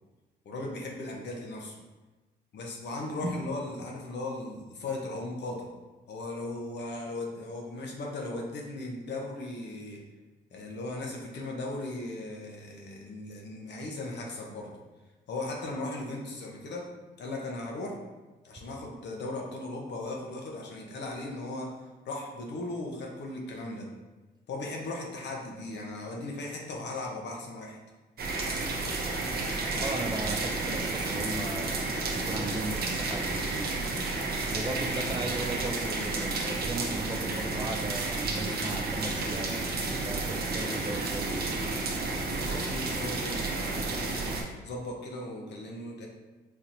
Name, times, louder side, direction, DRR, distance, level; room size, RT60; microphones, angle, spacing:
voice 1, 0.4-1.7 2.5-5.7 6.1-10.0 10.5-14.8 15.3-16.9 17.2-18.0 18.4-21.7 22.0-23.9 24.5-27.8 42.3-44.2 44.6-46.1, left 2 dB, 60° left, 0 dB, 0.8 m, -37 dB
sound 1, 28.2-44.4, right 3 dB, 50° right, 0.7 m, -31 dB
voice 2, 29.8-31.8 32.1-34.1 34.5-41.6, right 2 dB, 20° right, 3 dB, 0.4 m, -37 dB
4.2 x 2.9 x 2.6 m, 1.2 s
cardioid pair, 90°, 20 cm